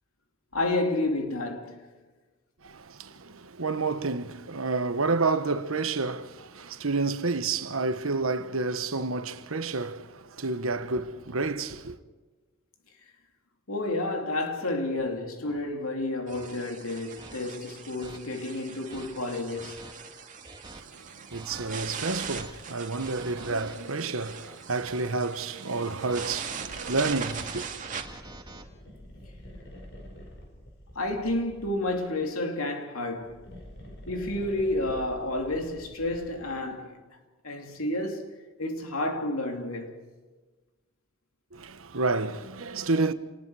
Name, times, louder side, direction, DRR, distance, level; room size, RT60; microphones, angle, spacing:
voice 1, 0.5-1.9 13.7-19.8 30.9-33.5 34.1-37.0 37.4-40.0, left 2 dB, 90° left, 2.9 m, -30 dB
voice 2, 2.6-12.0 20.9-27.7 41.5-43.1, right 3 dB, 80° right, 1.2 m, -30 dB
sound 1, 15.4-15.6 16.3-16.5 17.2-17.4 18.0-18.2 18.7-19.1 19.6-19.9 20.4-20.8 21.3-21.7 22.1-22.5 23.0-23.8 24.4-25.1 25.8-26.4 26.9-28.6, right 2 dB, 20° right, 1.6 m, -47 dB
sound 2, 16.3-28.0, right 6 dB, 35° right, 2.2 m, -41 dB
sound 3, 27.6-32.1 33.0-36.7, equal, 55° left, 5.3 m, -47 dB
29.0 x 20.0 x 4.9 m
head